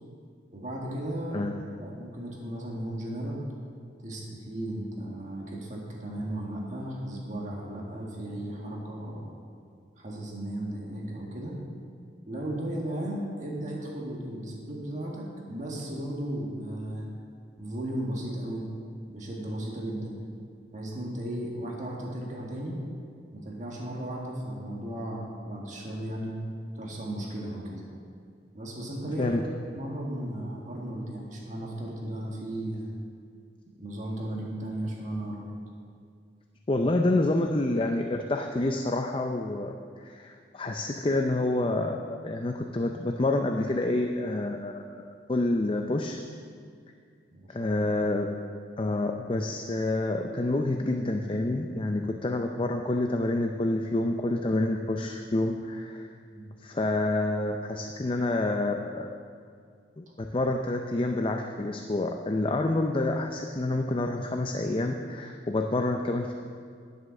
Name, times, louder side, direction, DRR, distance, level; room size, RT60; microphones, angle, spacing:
voice 1, 0.5-1.5 1.8-3.4 4.0-9.3 10.0-11.6 12.3-17.1 17.6-18.7 19.1-20.2 20.7-22.8 23.3-26.4 26.8-27.8 28.5-29.3 29.6-32.9 33.8-35.5 47.3-47.7 56.3-56.5, right 1 dB, 40° right, -2 dB, 1.7 m, -35 dB
voice 2, 36.7-45.0 45.3-46.2 47.5-48.3 48.8-56.1 56.6-59.2 60.0-66.3, left 2 dB, 30° left, 4 dB, 0.5 m, -28 dB
10.0 x 8.0 x 6.4 m, 2.2 s
head